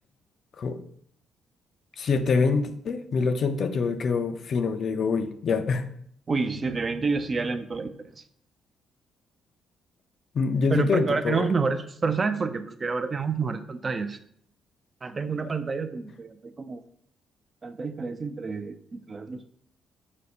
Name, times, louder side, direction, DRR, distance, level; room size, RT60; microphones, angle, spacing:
voice 1, 2.0-5.9 10.3-11.5 15.3-15.4, left 4 dB, 55° left, 9 dB, 0.4 m, -25 dB
voice 2, 6.3-8.2 10.7-14.2 15.0-16.8 17.6-19.4, right 4 dB, 35° right, 9 dB, 0.3 m, -29 dB
5.0 x 2.1 x 4.2 m, 0.65 s
cardioid pair, 90°, 0 cm